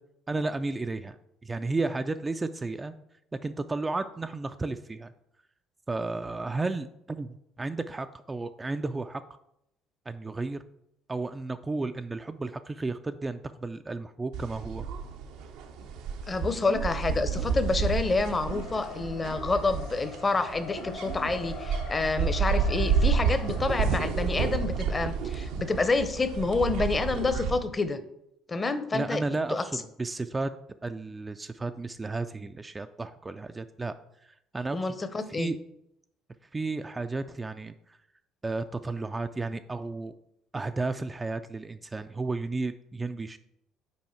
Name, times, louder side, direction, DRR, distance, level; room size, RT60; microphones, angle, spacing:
voice 1, 0.3-1.2 1.4-2.9 3.4-5.1 5.9-7.3 7.6-9.2 10.1-10.6 11.1-14.8 28.9-30.5 30.8-33.9 34.2-35.0 35.4-35.6 36.5-37.7 38.4-40.1 40.5-43.4, right 3 dB, 20° right, 9 dB, 0.3 m, -33 dB
sound 1, 14.3-27.6, right 6 dB, 65° right, 0.6 m, -30 dB
voice 2, 16.3-28.0 28.5-29.2 29.5-29.6 34.7-35.5, left 3 dB, 25° left, 11 dB, 0.7 m, -28 dB
Race car auto racing, 17.2-26.1, left 4 dB, 80° left, 1.7 m, -45 dB
5.5 x 4.7 x 4.4 m, 0.80 s
hypercardioid pair, 55°, 0 cm